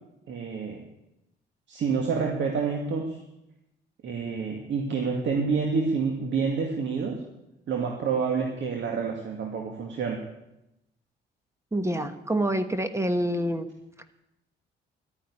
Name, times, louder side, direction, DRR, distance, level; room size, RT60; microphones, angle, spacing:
voice 1, 0.3-0.9 1.7-3.2 4.0-7.2 7.7-10.2, right 5 dB, 70° right, 1 dB, 2.1 m, -28 dB
voice 2, 11.7-13.7, right 1 dB, 15° right, 9 dB, 1.2 m, -27 dB
12.0 x 10.0 x 9.9 m, 0.89 s
cardioid pair, 90°, 20 cm